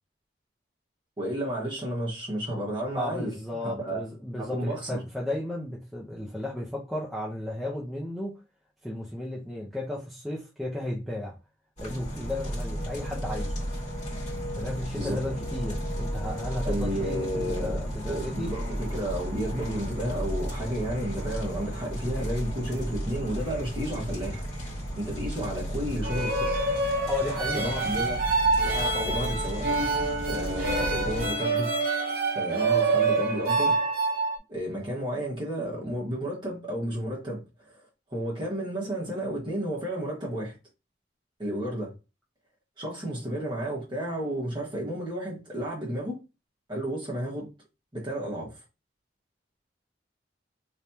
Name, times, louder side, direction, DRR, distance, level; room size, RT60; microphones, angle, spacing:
voice 1, 1.2-4.0 4.4-5.0 14.9-15.2 16.6-17.8 18.0-24.5 25.0-26.6 27.5-28.2 29.0-29.8 30.2-31.7 32.3-33.8 34.5-37.4 38.1-40.5 41.4-41.9 42.8-46.2 46.7-47.5 47.9-48.5, right 1 dB, 25° right, 1.5 m, -32 dB
voice 2, 3.0-8.4 8.8-11.4 11.8-13.5 14.6-18.5 27.1-27.7 28.6-29.2, left 1 dB, ahead, 0.7 m, -34 dB
sound 1, 11.8-31.3, equal, 40° left, 2.1 m, -34 dB
sound 2, 26.0-34.4, right 3 dB, 50° right, 1.0 m, -26 dB
3.4 x 3.2 x 2.8 m
head